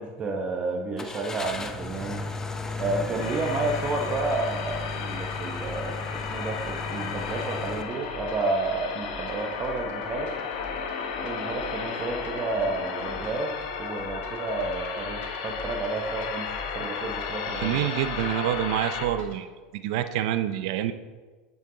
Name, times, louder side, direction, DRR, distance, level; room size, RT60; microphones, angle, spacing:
voice 1, 0.0-2.2 2.8-10.3 11.2-17.9, right 3 dB, 35° right, 2 dB, 1.0 m, -31 dB
Car / Engine starting, 1.0-7.8, left 3 dB, 15° left, 0.7 m, -34 dB
sound 1, 3.2-19.1, left 6 dB, 70° left, 1.2 m, -34 dB
sound 2, 3.6-19.4, left 3 dB, 55° left, 1.6 m, -45 dB
voice 2, 17.5-19.5 19.7-20.9, right 12 dB, 70° right, 11 dB, 0.6 m, -27 dB
8.3 x 6.6 x 3.9 m, 1.3 s
hypercardioid pair, 100°, 3 cm